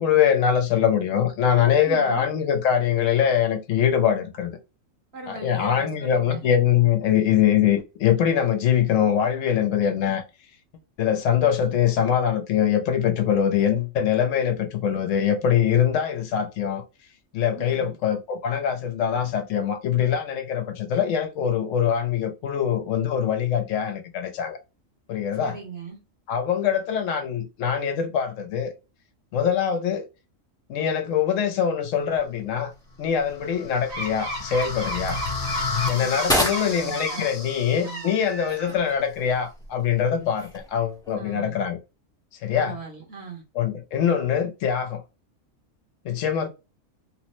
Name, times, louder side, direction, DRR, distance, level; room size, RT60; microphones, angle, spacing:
voice 1, 0.0-4.5 5.3-10.2 11.0-16.8 17.3-24.6 25.1-25.6 26.3-28.7 29.3-30.0 30.7-32.7 33.0-35.2 35.9-41.8 42.4-42.8 43.6-45.0 46.0-46.5, left 8 dB, 75° left, 0.9 m, -23 dB
voice 2, 1.9-2.2 5.1-6.5 17.5-17.9 25.4-26.0 35.9-37.3 37.7-38.1 41.1-41.6 42.5-43.4, right 4 dB, 55° right, 1.2 m, -39 dB
sound 1, 32.0-41.1, equal, 5° left, 0.6 m, -34 dB
sound 2, 33.3-38.4, left 4 dB, 45° left, 1.1 m, -32 dB
sound 3, 33.9-37.3 37.7-39.0, equal, 80° right, 1.4 m, -34 dB
3.1 x 2.0 x 2.9 m
omnidirectional pair, 1.4 m